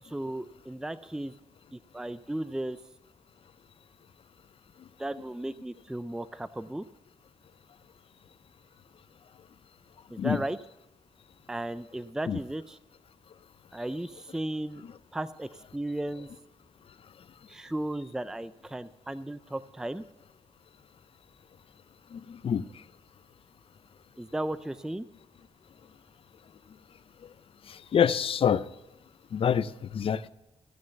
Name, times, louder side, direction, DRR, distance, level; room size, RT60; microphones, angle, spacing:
voice 1, 0.0-1.3 1.7-2.8 5.0-6.9 10.1-10.6 11.5-12.8 13.7-14.8 15.1-16.3 17.5-20.0 24.2-25.1, right 1 dB, 5° right, 0.4 m, -35 dB
voice 2, 22.1-22.7 27.7-28.6 29.3-30.3, left 8 dB, 60° left, 0.5 m, -26 dB
15.0 x 6.4 x 7.0 m
cardioid pair, 80°, 11 cm